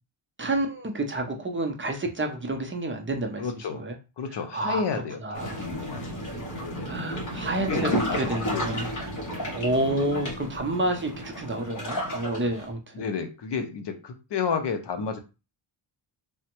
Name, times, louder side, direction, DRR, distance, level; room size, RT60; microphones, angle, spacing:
voice 1, 0.4-4.0 4.5-5.7 6.8-8.9 9.5-13.0, right 2 dB, 25° right, 3 dB, 0.4 m, -29 dB
voice 2, 3.4-3.8 4.2-6.1 6.6-6.9 7.6-8.9 9.8-10.1 12.9-15.2, left 5 dB, 55° left, 6 dB, 0.6 m, -31 dB
sound 1, 5.3-12.7, equal, 35° left, 1.1 m, -32 dB
3.3 x 2.1 x 2.9 m, 0.29 s
wide cardioid pair, 160°, 49 cm